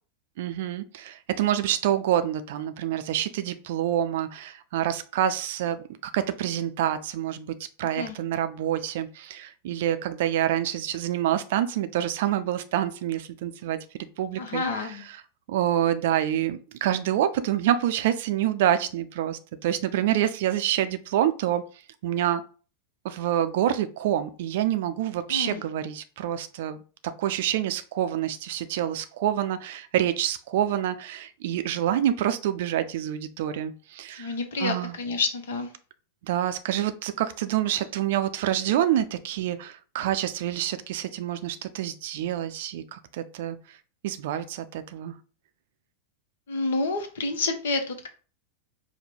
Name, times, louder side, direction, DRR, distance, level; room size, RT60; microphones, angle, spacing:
voice 1, 0.4-13.8 14.2-15.2 15.5-21.6 22.0-22.4 23.0-26.8 27.2-34.3 34.6-35.0 36.2-43.8 44.0-45.1, right 11 dB, 55° right, 11 dB, 0.4 m, -27 dB
voice 2, 14.4-15.0 25.3-25.6 34.2-35.7 46.5-48.1, left 3 dB, 60° left, 7 dB, 0.8 m, -29 dB
5.1 x 2.1 x 4.4 m, 0.38 s
figure-of-eight pair, 90°, 0 cm